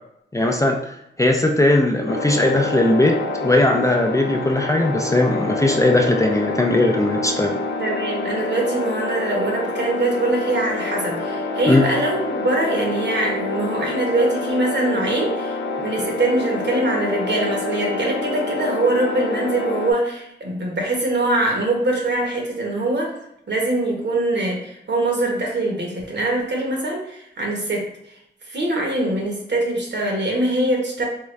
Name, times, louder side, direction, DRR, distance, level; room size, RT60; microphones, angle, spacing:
voice 1, 0.3-0.8 1.2-7.5 11.7-11.9, left 2 dB, 15° left, 2 dB, 0.4 m, -18 dB
sound 1, 2.1-19.9, left 2 dB, 75° left, 0.5 m, -27 dB
voice 2, 7.8-23.1 23.5-27.9 28.5-31.0, right 2 dB, 65° right, -1 dB, 1.0 m, -23 dB
3.6 x 2.3 x 3.1 m, 0.76 s
wide cardioid pair, 95°, 19 cm